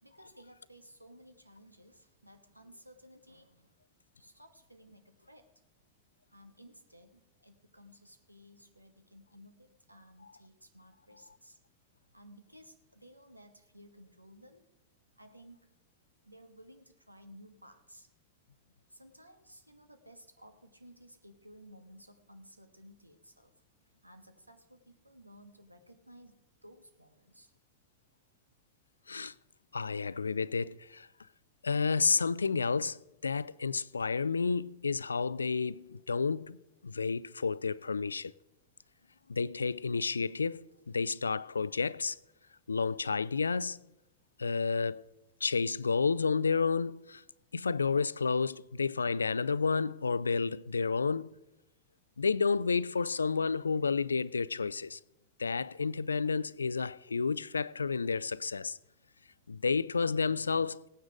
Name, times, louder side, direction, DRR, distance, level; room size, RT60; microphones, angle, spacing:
voice 1, 0.0-3.7 4.2-5.5 6.3-11.6 12.1-14.6 15.2-15.8 16.2-18.1 18.9-23.5 24.0-27.5 38.7-38.9, equal, 85° right, 1.4 m, -56 dB
voice 2, 29.7-31.1 31.6-36.6 36.8-38.3 39.3-40.6 40.9-42.2 42.7-43.8 44.4-45.0 45.4-47.2 47.5-51.3 52.2-55.0 55.4-58.8 59.5-60.9, left 5 dB, 75° left, 0.3 m, -31 dB
17.5 x 9.3 x 5.0 m
figure-of-eight pair, 90°, 0 cm